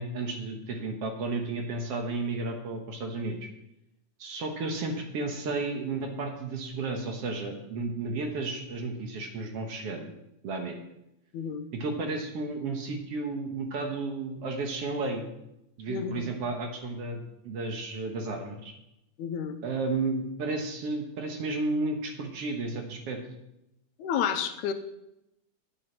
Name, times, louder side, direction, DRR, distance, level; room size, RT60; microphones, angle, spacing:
voice 1, 0.0-3.4 4.2-10.1 10.4-10.8 11.7-15.2 15.8-18.7 19.6-23.2, right 3 dB, 60° right, 3 dB, 2.1 m, -33 dB
voice 2, 11.3-11.6 15.9-16.3 19.2-19.6 24.0-24.7, left 8 dB, 90° left, 8 dB, 2.2 m, -30 dB
9.4 x 8.7 x 5.8 m, 0.86 s
omnidirectional pair, 3.3 m